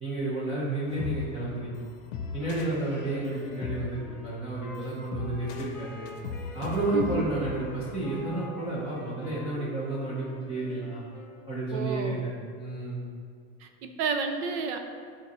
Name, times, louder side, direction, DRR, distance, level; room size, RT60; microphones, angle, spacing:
voice 1, 0.0-1.7 2.3-6.1 6.5-11.0 11.5-12.3 12.6-13.0, right 2 dB, 20° right, -7 dB, 1.0 m, -31 dB
sound 1, 0.9-9.1, left 5 dB, 65° left, 0.7 m, -39 dB
Wind instrument woodwind instrument, 2.8-11.8, equal, 5° left, 0.4 m, -47 dB
voice 2, 6.9-7.3 11.7-12.2 13.6-14.8, right 5 dB, 60° right, 6 dB, 0.7 m, -31 dB
9.8 x 4.3 x 3.1 m, 2.1 s
cardioid pair, 175°, 32 cm